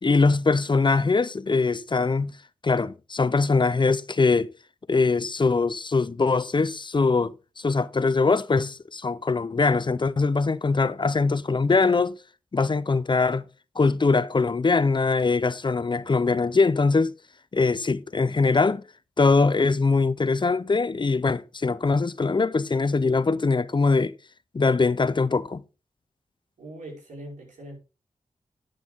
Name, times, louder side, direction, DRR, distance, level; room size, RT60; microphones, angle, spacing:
voice 1, 0.0-2.3 2.6-4.5 4.9-12.2 12.5-13.4 13.8-17.1 17.5-18.8 19.2-24.1 24.5-25.6, left 4 dB, 40° left, 0.7 m, -22 dB
voice 2, 26.6-27.8, right 1 dB, 85° right, 5.1 m, -41 dB
10.5 x 9.0 x 3.6 m
cardioid pair, 50°, 13 cm